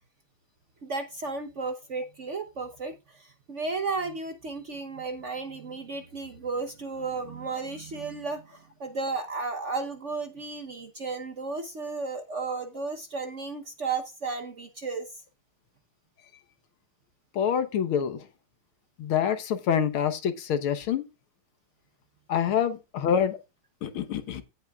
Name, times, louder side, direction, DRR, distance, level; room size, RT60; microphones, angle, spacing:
voice 1, 0.8-15.1, right 4 dB, 50° right, 0.9 m, -34 dB
voice 2, 17.3-18.2 19.0-21.1 22.3-23.4 23.8-24.4, left 8 dB, 90° left, 2.0 m, -26 dB
17.0 x 5.6 x 2.4 m
omnidirectional pair, 2.3 m